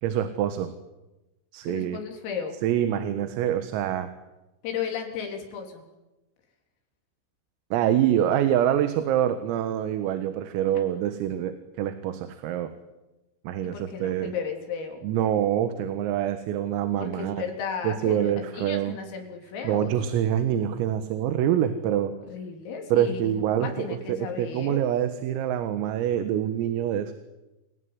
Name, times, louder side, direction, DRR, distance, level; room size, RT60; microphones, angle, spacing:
voice 1, 0.0-0.7 1.5-2.0 2.6-4.1 7.7-12.7 13.5-14.3 15.0-17.4 17.8-19.0 19.6-22.1 22.9-27.1, right 10 dB, 85° right, 9 dB, 4.1 m, -25 dB
voice 2, 1.7-2.6 4.6-5.8 13.6-15.0 17.0-19.9 22.3-24.8, left 6 dB, 80° left, 3 dB, 6.5 m, -34 dB
28.5 x 19.5 x 9.8 m, 1.0 s
omnidirectional pair, 5.9 m